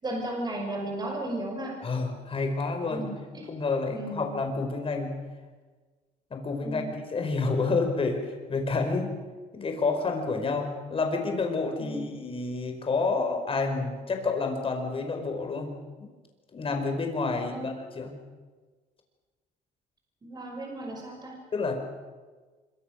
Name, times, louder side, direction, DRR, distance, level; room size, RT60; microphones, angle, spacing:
voice 1, 0.0-1.8 2.9-3.5 3.9-4.4 6.6-7.0 11.8-12.1 17.3-17.7 20.2-21.4, right 1 dB, 25° right, 1 dB, 5.9 m, -35 dB
voice 2, 1.8-3.1 3.5-5.2 6.3-9.1 9.5-16.1 16.5-18.1 21.5-21.8, left 3 dB, 35° left, 5 dB, 5.2 m, -29 dB
25.0 x 24.0 x 6.7 m, 1.4 s
cardioid pair, 110°, 17 cm